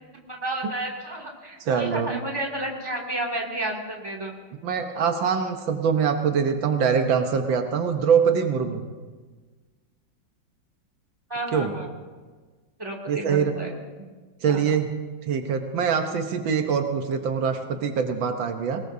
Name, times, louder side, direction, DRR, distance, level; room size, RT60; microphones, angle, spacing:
voice 1, 0.3-4.3 11.3-11.9 12.8-13.7 14.5-14.6, right 1 dB, 10° right, -2 dB, 2.5 m, -31 dB
voice 2, 1.6-2.2 4.6-8.8 11.5-11.7 13.1-13.5 14.4-14.9 15.3-18.8, right 6 dB, 80° right, 5 dB, 1.8 m, -23 dB
22.0 x 19.5 x 2.7 m, 1.4 s
omnidirectional pair, 2.1 m